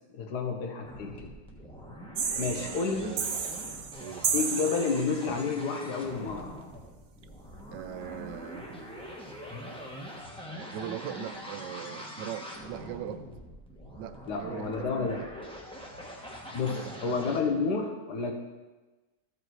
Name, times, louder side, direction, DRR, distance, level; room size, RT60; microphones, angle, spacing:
voice 1, 0.1-1.3 2.4-3.1 4.3-6.5 14.3-15.2 16.5-18.3, left 4 dB, 70° left, 3 dB, 1.7 m, -30 dB
sound 1, 0.8-17.4, equal, 5° left, 1.0 m, -44 dB
sound 2, 2.1-5.4, right 6 dB, 65° right, 1.3 m, -33 dB
voice 2, 2.3-3.3 4.0-4.3 7.7-8.8 10.5-13.3 14.0-15.3 16.7-17.6, right 10 dB, 80° right, 10 dB, 1.3 m, -41 dB
13.5 x 5.0 x 4.7 m, 1.2 s
omnidirectional pair, 1.9 m